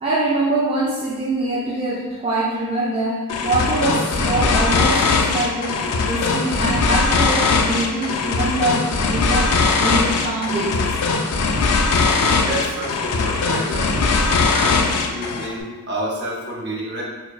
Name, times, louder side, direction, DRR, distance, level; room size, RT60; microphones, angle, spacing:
voice 1, 0.0-11.0, right 2 dB, 25° right, -7 dB, 0.3 m, -24 dB
sound 1, 3.3-15.5, left 4 dB, 80° left, 0.3 m, -20 dB
voice 2, 12.1-17.0, right 1 dB, 50° right, -3 dB, 0.7 m, -29 dB
4.3 x 2.1 x 2.3 m, 1.3 s
head